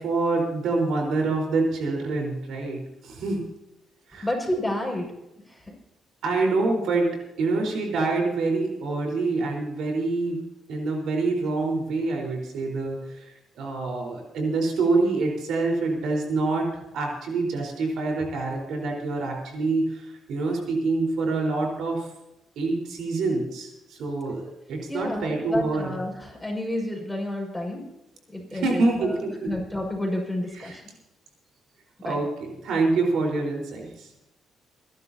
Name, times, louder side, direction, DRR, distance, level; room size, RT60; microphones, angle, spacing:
voice 1, 0.0-3.5 4.1-4.3 6.2-16.7 16.9-22.1 22.6-26.0 28.5-29.5 30.5-30.8 32.0-34.1, right 3 dB, 75° right, 1 dB, 4.3 m, -26 dB
voice 2, 4.2-5.1 5.5-5.7 24.9-27.8 28.3-29.2 29.5-30.8 32.0-32.2, left 1 dB, 5° left, -1 dB, 5.7 m, -30 dB
29.0 x 11.5 x 2.8 m, 0.92 s
cardioid pair, 90°, 0 cm